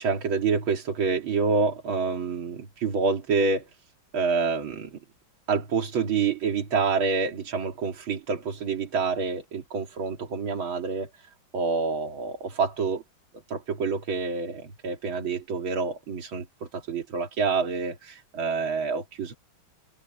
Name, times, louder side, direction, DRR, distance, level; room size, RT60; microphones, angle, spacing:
voice 1, 0.0-3.7 4.1-4.9 5.5-13.0 13.5-16.4 16.7-19.4, right 4 dB, 80° right, 3.1 m, -27 dB
omnidirectional pair, 2.2 m